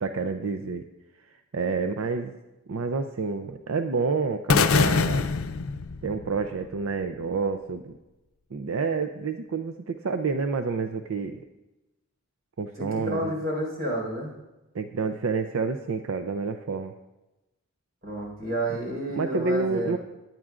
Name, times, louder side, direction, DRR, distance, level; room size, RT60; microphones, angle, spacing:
voice 1, 0.0-0.8 1.5-2.3 2.7-5.3 6.0-7.9 8.5-11.4 12.6-13.4 14.7-16.9 19.1-20.0, right 4 dB, 80° right, 7 dB, 0.5 m, -28 dB
sound 1, 4.5-6.6, left 5 dB, 80° left, 0.5 m, -23 dB
voice 2, 12.8-14.3 18.0-19.9, equal, 45° right, -2 dB, 4.6 m, -30 dB
18.0 x 10.5 x 2.5 m, 1.0 s
head